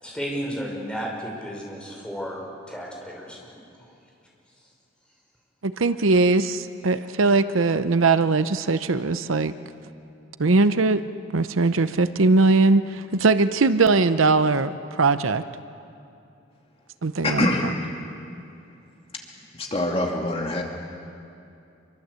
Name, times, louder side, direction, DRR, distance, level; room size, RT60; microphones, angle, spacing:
voice 1, 0.0-3.5, equal, 5° left, -2 dB, 5.6 m, -33 dB
voice 2, 5.6-9.5 10.4-11.0 11.3-15.4 17.0-17.5, right 3 dB, 75° right, 12 dB, 0.8 m, -20 dB
voice 3, 17.2-17.7 19.6-20.6, left 1 dB, 30° left, 0 dB, 2.4 m, -24 dB
26.5 x 24.5 x 8.2 m, 2.6 s
head